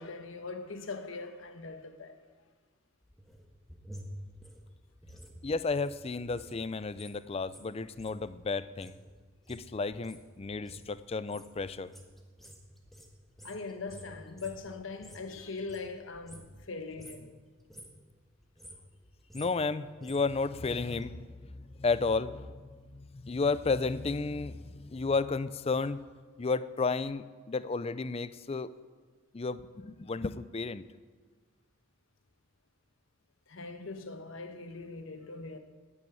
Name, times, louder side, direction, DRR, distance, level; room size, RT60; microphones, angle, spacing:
voice 1, 0.0-2.2 13.4-17.3 33.5-35.6, left 3 dB, 75° left, 1.2 m, -41 dB
sound 1, 3.0-6.6 6.8-15.3 15.6-16.7 16.9-17.3 17.6-18.0 18.4-21.1 21.4-21.5, equal, ahead, 1.4 m, -51 dB
voice 2, 5.4-8.9 9.5-11.9 19.3-21.3 21.5-22.6 22.9-26.0 26.4-28.7 29.3-30.8, left 4 dB, 30° left, 0.4 m, -32 dB
9.4 x 9.3 x 9.3 m
head